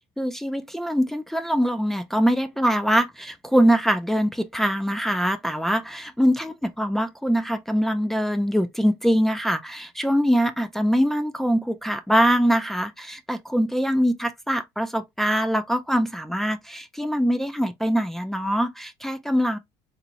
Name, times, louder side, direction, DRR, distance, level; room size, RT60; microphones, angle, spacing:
voice 1, 0.2-19.6, equal, 5° left, 0.4 m, -23 dB
3.9 x 2.2 x 2.9 m
supercardioid pair, 95°, 11 cm